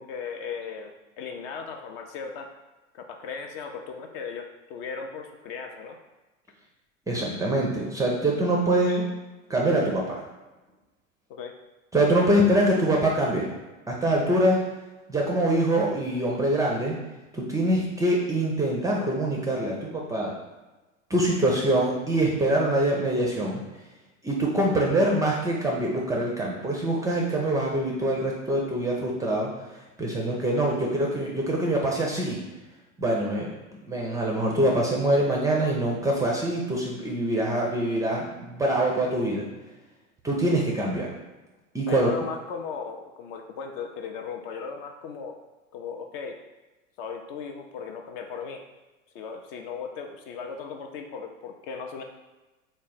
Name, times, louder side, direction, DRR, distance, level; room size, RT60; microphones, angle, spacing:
voice 1, 0.0-2.5 2.9-6.0 11.3-11.5 41.9-45.4 45.7-46.4 47.0-48.6 49.1-52.0, left 5 dB, 45° left, 5 dB, 0.5 m, -37 dB
voice 2, 7.1-9.0 9.5-10.2 11.9-13.5 13.9-14.6 15.1-17.0 17.3-20.3 21.1-23.6 24.2-29.5 30.0-32.4 33.0-33.5 33.8-39.5 40.2-41.1 41.7-42.1, right 1 dB, 10° right, -2 dB, 0.4 m, -24 dB
3.5 x 2.1 x 4.1 m, 1.1 s
hypercardioid pair, 85°, 40 cm